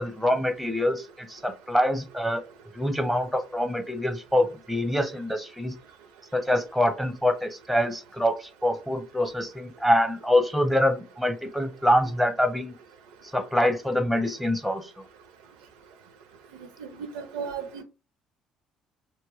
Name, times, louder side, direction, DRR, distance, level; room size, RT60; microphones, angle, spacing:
voice 1, 0.0-2.4 2.7-5.7 6.3-12.7 13.3-14.9, left 1 dB, ahead, 6 dB, 0.7 m, -25 dB
voice 2, 16.6-17.8, right 6 dB, 80° right, 7 dB, 0.4 m, -36 dB
2.2 x 2.1 x 3.4 m, 0.31 s
hypercardioid pair, 55°, 3 cm